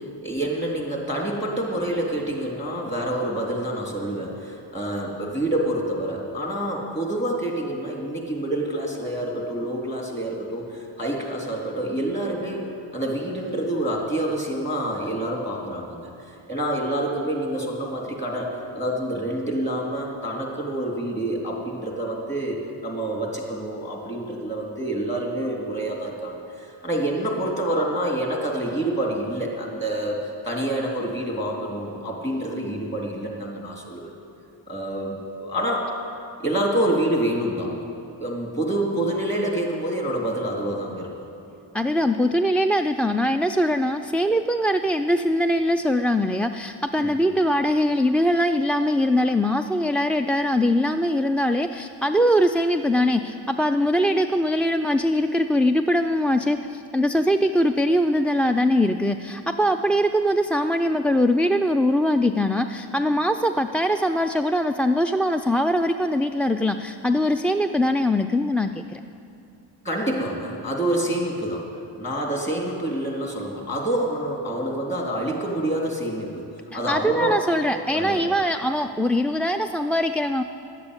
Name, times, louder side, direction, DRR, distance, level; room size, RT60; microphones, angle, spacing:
voice 1, 0.0-12.6 12.9-34.1 34.7-35.9 36.4-37.7 38.2-41.1 47.0-47.1 69.8-76.5 76.7-77.4 77.9-78.4, right 1 dB, 25° left, -1 dB, 3.4 m, -27 dB
voice 2, 41.7-69.0 76.7-80.4, equal, 5° left, 7 dB, 0.3 m, -22 dB
11.5 x 8.4 x 9.7 m, 2.6 s
cardioid pair, 50°, 46 cm